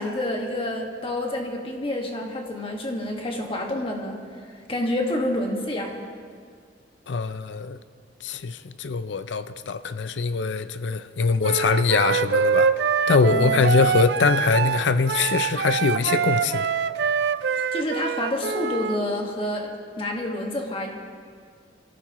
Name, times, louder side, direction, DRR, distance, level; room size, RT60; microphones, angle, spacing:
voice 1, 0.0-4.2 4.5-5.9 13.3-13.6 17.5-20.9, left 1 dB, 30° left, 1 dB, 1.7 m, -28 dB
voice 2, 7.1-7.8 8.2-12.7 13.1-16.7, left 4 dB, 80° left, 12 dB, 0.5 m, -23 dB
Wind instrument woodwind instrument, 11.4-19.0, right 6 dB, 65° right, 0.4 m, -24 dB
24.5 x 14.0 x 3.1 m, 2.1 s
head